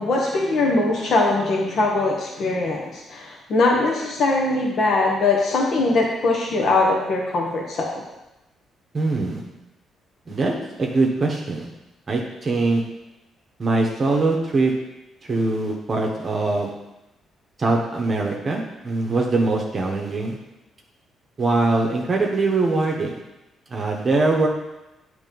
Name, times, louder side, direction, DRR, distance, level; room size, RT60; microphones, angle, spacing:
voice 1, 0.0-8.0, left 3 dB, 60° left, -2 dB, 1.2 m, -21 dB
voice 2, 8.9-9.4 10.3-10.5 10.8-11.7 12.1-12.8 13.6-14.7 15.2-16.7 17.6-20.4 21.4-23.2 23.7-24.5, right 3 dB, 35° right, 0 dB, 1.2 m, -22 dB
9.7 x 3.4 x 5.4 m, 0.97 s
cardioid pair, 90°, 0 cm